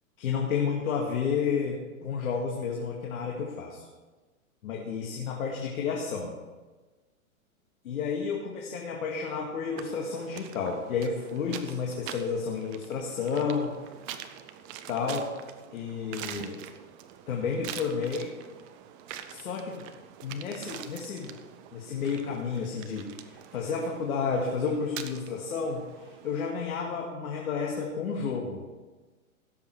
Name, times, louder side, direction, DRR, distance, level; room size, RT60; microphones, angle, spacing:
voice 1, 0.2-3.8 4.6-6.3 7.8-13.7 14.9-15.3 15.7-16.6 17.3-18.3 19.3-19.9 20.2-21.4 21.7-25.8 26.2-28.6, left 5 dB, 75° left, -1 dB, 2.2 m, -31 dB
sound 1, 9.8-26.5, right 10 dB, 20° right, 0.5 m, -45 dB
16.0 x 7.3 x 4.8 m, 1.2 s
hypercardioid pair, 140°, 43 cm